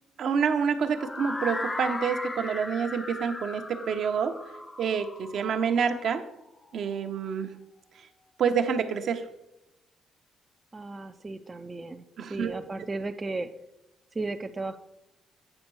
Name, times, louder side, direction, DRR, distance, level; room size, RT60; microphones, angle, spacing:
voice 1, 0.2-4.3 4.8-6.2 6.7-7.5 8.4-9.2 12.2-12.6, right 6 dB, 65° right, 6 dB, 0.8 m, -27 dB
sound 1, 0.9-6.9, left 2 dB, 20° left, 0.6 m, -37 dB
voice 2, 10.7-13.5 14.1-14.8, right 2 dB, 25° right, 6 dB, 0.4 m, -35 dB
8.7 x 5.2 x 4.7 m, 0.91 s
cardioid pair, 90°, 0 cm